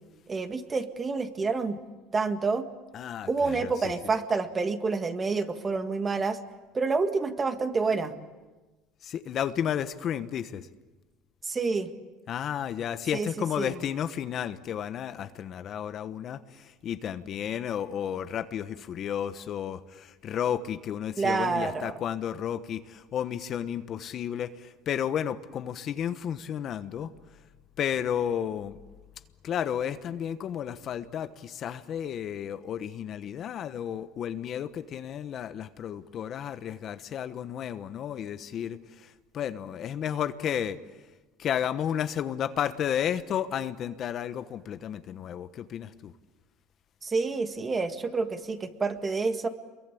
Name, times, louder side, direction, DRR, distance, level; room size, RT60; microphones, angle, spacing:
voice 1, 0.3-1.8 2.1-2.7 3.3-6.4 6.7-8.1 11.4-11.9 13.1-13.3 13.6-13.8 21.2-21.9 47.0-49.5, right 4 dB, 20° right, 8 dB, 1.9 m, -28 dB
voice 2, 2.9-3.9 9.0-10.7 12.3-27.4 27.8-28.8 29.4-40.8 41.4-46.1, left 9 dB, 45° left, 11 dB, 1.1 m, -32 dB
27.5 x 23.0 x 8.5 m, 1.2 s
supercardioid pair, 125°, 0 cm